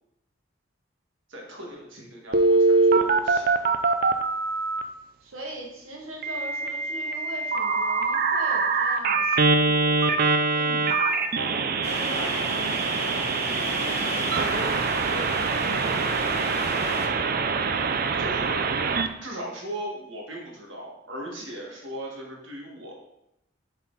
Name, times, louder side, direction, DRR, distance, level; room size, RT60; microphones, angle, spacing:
voice 1, 1.3-3.7 18.2-18.7 19.2-22.9, right 1 dB, 65° right, -2 dB, 1.9 m, -38 dB
Telephone, 2.3-4.8 6.2-19.1, right 4 dB, 45° right, 0.5 m, -24 dB
voice 2, 5.2-16.7, right 1 dB, 85° right, -1 dB, 1.7 m, -40 dB
sound 1, 11.8-17.1, left 2 dB, 30° left, 1.0 m, -34 dB
7.5 x 4.3 x 4.1 m, 0.83 s
head